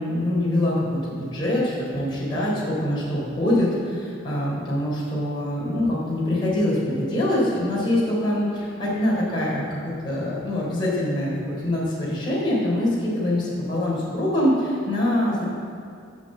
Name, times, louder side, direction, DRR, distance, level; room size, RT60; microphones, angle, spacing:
voice 1, 0.0-15.4, left 1 dB, 25° left, -7 dB, 3.7 m, -24 dB
12.0 x 7.8 x 7.5 m, 2.4 s
head